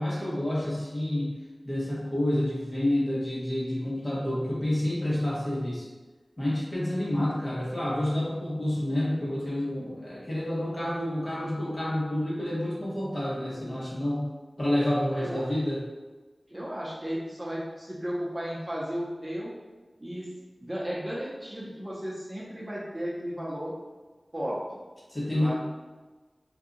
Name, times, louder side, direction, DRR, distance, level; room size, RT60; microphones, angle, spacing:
voice 1, 0.0-1.3 1.6-5.9 6.4-14.2 14.6-15.8 25.1-25.5, left 1 dB, 45° left, -8 dB, 1.2 m, -29 dB
voice 2, 16.5-19.5 20.0-20.3 20.6-23.7 24.3-24.8 25.3-25.5, equal, 20° right, -5 dB, 0.7 m, -34 dB
2.7 x 2.3 x 3.8 m, 1.3 s
wide cardioid pair, 50°, 0 cm